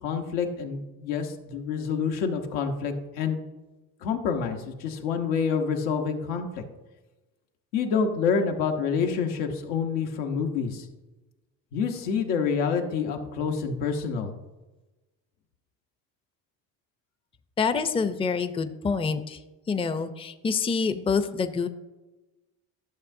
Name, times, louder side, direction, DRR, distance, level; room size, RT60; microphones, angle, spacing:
voice 1, 0.0-3.5 4.0-6.6 7.7-10.9 11.7-14.3, left 6 dB, 85° left, 4 dB, 1.1 m, -27 dB
voice 2, 17.6-19.4 19.7-21.7, left 5 dB, 15° left, 10 dB, 0.5 m, -26 dB
11.5 x 6.6 x 2.7 m, 1.1 s
supercardioid pair, 70°, 44 cm